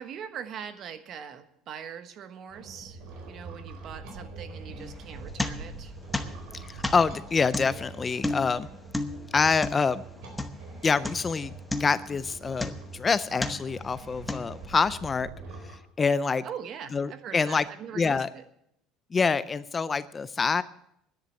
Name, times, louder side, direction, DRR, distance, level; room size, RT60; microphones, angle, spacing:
voice 1, 0.0-3.0 3.3-5.9 16.4-18.4, right 8 dB, 45° right, 10 dB, 1.2 m, -41 dB
sound 1, 2.5-15.8, right 3 dB, 75° right, 4.1 m, -44 dB
sound 2, 4.8-5.9 6.1-10.7 11.0-11.4 11.7-13.0 13.4-13.8 14.3-14.8, left 2 dB, 5° left, 0.9 m, -33 dB
voice 2, 6.5-8.7 9.3-10.0 10.8-11.5 11.8-15.3 15.6-16.4 16.9-17.6 18.0-18.3 19.1-20.6, left 5 dB, 20° left, 16 dB, 0.4 m, -26 dB
10.5 x 10.5 x 8.2 m, 0.76 s
cardioid pair, 135°, 0 cm